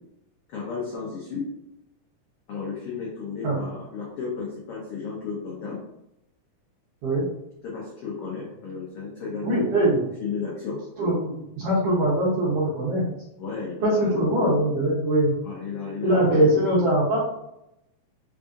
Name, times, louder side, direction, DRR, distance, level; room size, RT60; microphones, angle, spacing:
voice 1, 0.5-1.4 2.5-5.8 7.6-9.5 9.7-9.9 10.2-10.8 13.4-14.1 15.4-16.5, left 5 dB, 85° left, -4 dB, 1.2 m, -33 dB
voice 2, 9.4-10.0 11.0-13.1 13.8-15.3 16.0-17.2, right 1 dB, 70° right, -7 dB, 1.5 m, -22 dB
4.8 x 2.5 x 2.4 m, 0.85 s
omnidirectional pair, 3.6 m